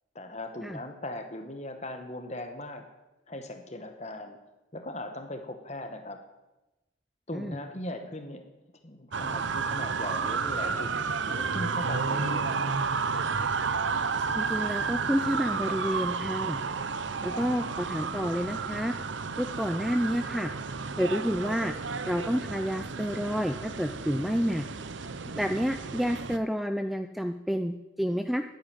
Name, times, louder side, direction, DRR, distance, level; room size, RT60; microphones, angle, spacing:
voice 1, 0.1-2.9 3.3-4.4 4.7-6.2 7.3-8.4 8.8-10.9 11.2-12.8 17.3-17.4 25.3-25.5, left 1 dB, 35° left, 6 dB, 1.6 m, -39 dB
sound 1, 9.1-26.4, right 5 dB, 70° right, 0.8 m, -32 dB
voice 2, 14.3-16.6 17.2-18.9 19.4-20.5 21.0-21.7 22.1-24.6 25.3-28.4, equal, ahead, 7 dB, 0.4 m, -29 dB
11.0 x 10.5 x 9.0 m, 1.0 s
head